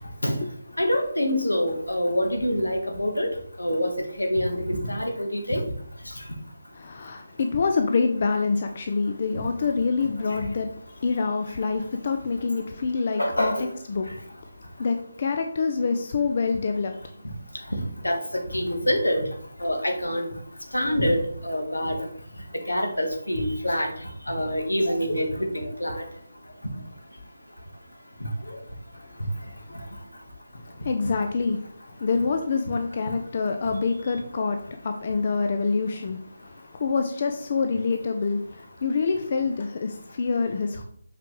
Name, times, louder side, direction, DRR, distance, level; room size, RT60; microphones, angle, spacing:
voice 1, 0.8-3.3 3.6-3.9 4.2-5.6 13.2-13.6 18.0-18.2 18.5-19.2 19.6-20.3 20.7-22.0 22.7-23.9 24.3-26.0, equal, 80° left, 1.5 m, -25 dB
voice 2, 6.8-10.7 11.0-13.5 13.9-14.1 14.8-16.9 30.8-31.6 32.0-36.2 36.8-40.8, left 4 dB, 40° left, 0.5 m, -26 dB
7.5 x 4.6 x 3.2 m
figure-of-eight pair, 150°, 0 cm